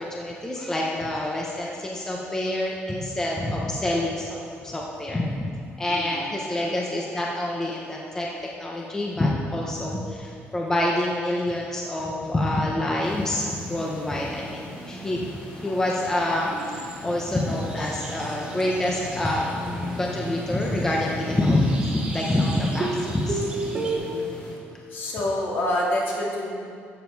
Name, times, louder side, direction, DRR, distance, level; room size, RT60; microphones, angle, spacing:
voice 1, 0.0-5.5 5.8-8.3 8.5-15.3 15.6-19.5 19.8-23.4, left 1 dB, 10° left, -2 dB, 0.8 m, -26 dB
voice 2, 5.9-7.3 16.3-16.4 17.3-17.5 18.5-18.6 22.2-22.3 23.9-24.2 24.9-26.5, left 1 dB, 55° left, -3 dB, 2.5 m, -29 dB
sound 1, 13.0-24.5, left 1 dB, 30° left, 2.6 m, -38 dB
sound 2, 16.4-23.9, right 3 dB, 20° right, 1.8 m, -35 dB
14.0 x 7.5 x 4.6 m, 2.4 s
cardioid pair, 175°, 4 cm